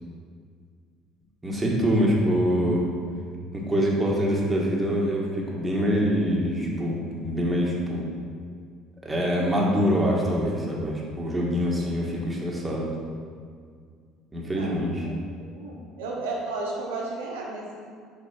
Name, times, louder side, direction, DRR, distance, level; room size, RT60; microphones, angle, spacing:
voice 1, 1.4-2.9 3.5-8.0 9.0-12.9 14.3-15.1, equal, 20° right, -3 dB, 1.8 m, -25 dB
voice 2, 14.4-15.1 15.6-17.9, right 2 dB, 80° right, -3 dB, 1.0 m, -34 dB
6.4 x 4.7 x 4.5 m, 2.1 s
hypercardioid pair, 60°, 0 cm